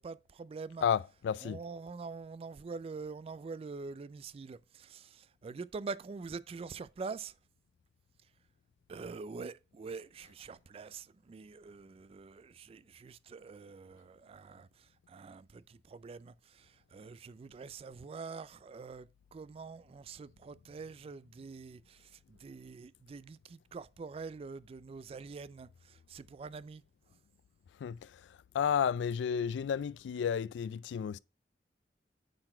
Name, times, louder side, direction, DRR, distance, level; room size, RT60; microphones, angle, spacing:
voice 1, 0.0-0.9 1.4-7.4 8.9-26.8, right 4 dB, 35° right, 0.3 m, -45 dB
voice 2, 0.8-1.6 27.8-28.1 28.5-31.2, left 7 dB, 85° left, 0.3 m, -32 dB
9.0 x 4.0 x 4.3 m
head